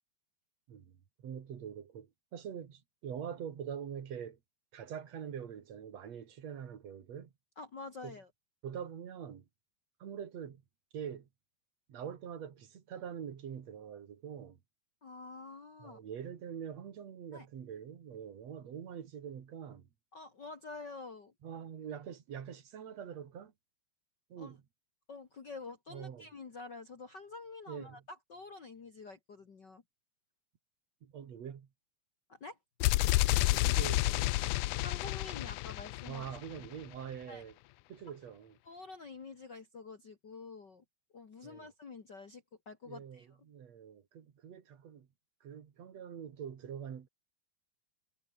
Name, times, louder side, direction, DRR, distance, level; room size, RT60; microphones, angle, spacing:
voice 1, 0.7-4.4 4.7-7.3 8.0-8.2 8.6-9.5 10.0-10.6 10.9-11.3 11.9-14.6 15.8-19.9 21.4-23.5 24.3-24.6 25.9-26.3 27.7-28.0 31.0-31.7 33.3-34.5 36.1-37.5 37.9-38.6 41.4-41.7 42.9-45.1 45.4-47.1, right 8 dB, 60° right, 3.2 m, -44 dB
voice 2, 7.6-8.3 15.0-16.0 17.3-17.5 20.1-21.3 24.4-24.5 25.1-29.8 32.3-32.6 34.8-36.3 37.3-37.4 38.6-40.8 41.1-43.3, left 3 dB, 40° left, 2.3 m, -48 dB
sound 1, 32.8-36.7, left 19 dB, 80° left, 2.1 m, -30 dB
omnidirectional pair, 3.6 m